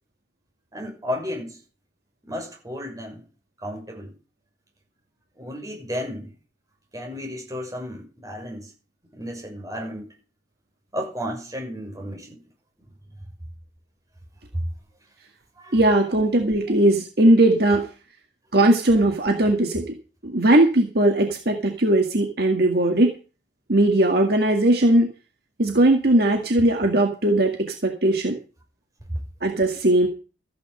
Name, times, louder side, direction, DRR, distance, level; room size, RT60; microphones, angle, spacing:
voice 1, 0.7-1.6 2.2-3.2 3.6-4.1 5.4-6.3 6.9-8.7 9.1-10.1 10.9-12.4 14.5-14.6 15.6-15.8 29.1-29.2, equal, 20° right, 6.1 m, -33 dB
voice 2, 15.7-17.9 18.5-19.8 20.2-23.1 23.7-25.1 25.6-28.4 29.4-30.1, right 1 dB, 60° right, 2.0 m, -19 dB
14.5 x 9.9 x 5.6 m
head